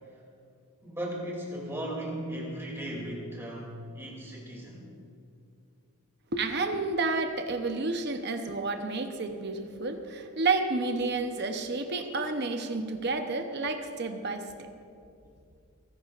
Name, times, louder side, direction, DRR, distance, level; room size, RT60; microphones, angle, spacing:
voice 1, 0.8-4.9, right 1 dB, 10° right, -2 dB, 2.7 m, -37 dB
voice 2, 6.3-14.7, right 3 dB, 50° right, 6 dB, 0.8 m, -30 dB
30.0 x 10.5 x 2.5 m, 2.5 s
head